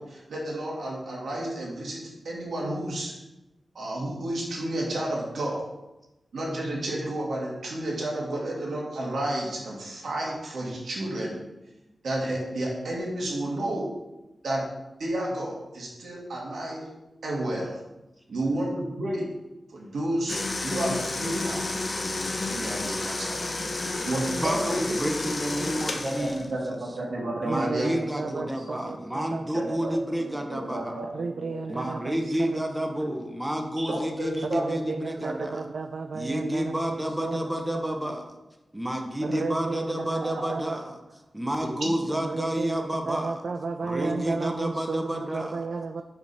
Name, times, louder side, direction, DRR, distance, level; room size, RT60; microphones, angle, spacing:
voice 1, 0.0-3.1 3.7-5.7 6.3-11.4 12.0-13.9 14.4-14.6 15.0-16.9 17.2-17.8 18.3-19.3 19.7-21.6 22.5-23.5 24.0-25.0 26.0-27.9 28.2-28.5 28.8-29.0 29.5-29.9 30.5-31.6 33.8-34.8 40.4-40.5 41.8-41.9, right 1 dB, 90° right, -3 dB, 2.0 m, -31 dB
sound 1, 20.3-26.5, left 2 dB, 40° left, 0.8 m, -31 dB
voice 2, 24.4-26.5 27.4-31.1 31.7-35.7 36.1-38.3 38.7-41.0 41.3-43.4 43.8-45.7, equal, 10° right, 4 dB, 0.7 m, -30 dB
voice 3, 27.4-30.0 31.1-32.6 34.5-38.0 39.2-40.8 42.2-46.0, right 4 dB, 70° right, 6 dB, 0.4 m, -33 dB
5.3 x 5.0 x 5.4 m, 0.99 s
wide cardioid pair, 115°, 0 cm